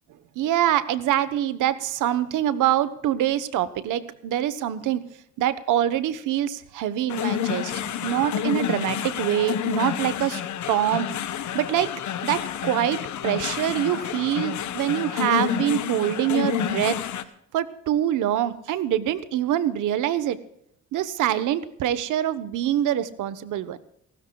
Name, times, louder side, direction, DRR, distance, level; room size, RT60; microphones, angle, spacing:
voice 1, 0.4-5.0 5.4-10.4 10.7-11.1 11.5-11.9 12.2-17.0 17.5-20.4 20.9-23.8, right 11 dB, 85° right, 14 dB, 1.1 m, -25 dB
sound 1, 7.1-17.2, left 9 dB, 70° left, 1.2 m, -29 dB
29.0 x 13.0 x 2.3 m, 0.74 s
cardioid pair, 90°, 30 cm